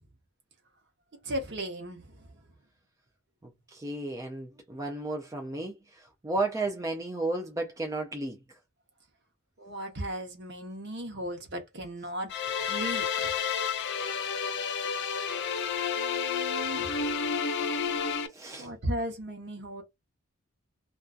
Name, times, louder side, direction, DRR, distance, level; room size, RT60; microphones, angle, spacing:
voice 1, 1.2-2.1 9.6-12.3 12.6-13.3 16.0-17.0 18.6-19.8, right 1 dB, 55° right, 0.8 m, -36 dB
voice 2, 3.7-8.4 18.3-18.7, right 2 dB, 15° right, 0.3 m, -33 dB
sound 1, 12.3-18.3, left 6 dB, 55° left, 0.4 m, -30 dB
2.5 x 2.2 x 2.3 m
head